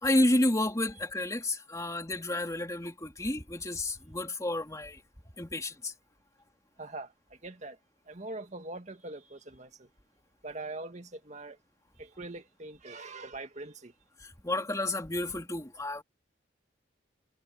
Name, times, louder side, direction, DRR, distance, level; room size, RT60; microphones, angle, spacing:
voice 1, 0.0-5.0 5.4-5.9 14.2-16.0, left 1 dB, 15° left, 3.3 m, -30 dB
voice 2, 6.8-7.8 8.1-9.9 10.4-11.6 12.0-13.9, right 2 dB, 40° right, 2.1 m, -42 dB
head